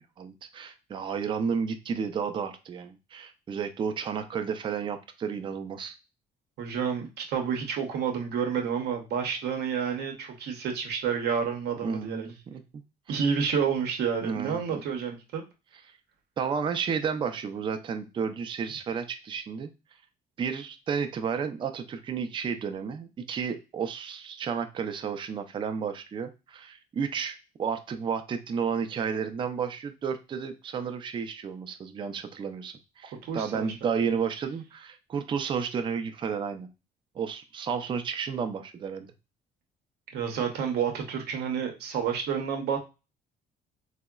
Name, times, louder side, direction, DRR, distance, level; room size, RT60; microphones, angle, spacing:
voice 1, 0.0-5.9 11.8-12.6 14.2-14.8 16.4-19.7 20.4-36.7 37.2-39.1, right 6 dB, 30° right, 8 dB, 0.4 m, -32 dB
voice 2, 6.6-12.3 13.1-15.4 33.2-33.9 40.1-42.8, right 7 dB, 70° right, 3 dB, 0.7 m, -29 dB
3.6 x 2.0 x 2.2 m, 0.28 s
cardioid pair, 110°, 17 cm